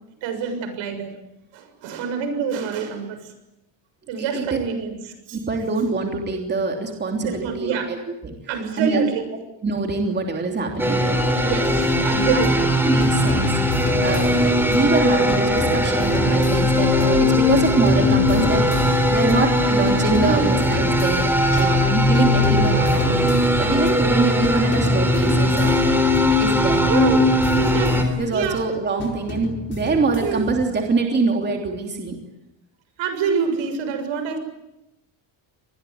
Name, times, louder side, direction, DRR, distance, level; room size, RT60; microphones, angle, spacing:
voice 1, 0.2-1.2 1.5-3.3 4.1-5.4 7.2-7.9 8.5-9.2 11.4-12.7 20.2-20.6 21.5-21.8 26.9-28.0 28.3-28.6 30.2-30.5 33.0-34.4, right 6 dB, 75° right, 8 dB, 6.9 m, -26 dB
voice 2, 4.2-4.6 5.3-8.0 8.8-9.0 9.6-11.2 12.0-12.5 12.8-25.8 26.4-26.8 28.2-32.2, right 3 dB, 20° right, 2 dB, 3.2 m, -24 dB
sound 1, 10.8-28.0, left 1 dB, 5° right, 3.7 m, -19 dB
sound 2, 12.4-12.7 13.0-14.9 15.3-17.3 17.6-19.5 19.8-21.9 22.1-24.1 24.4-26.4 26.7-28.6 29.0-30.7, left 2 dB, 25° left, 4.4 m, -30 dB
26.0 x 20.5 x 9.5 m, 0.90 s
cardioid pair, 170°, 46 cm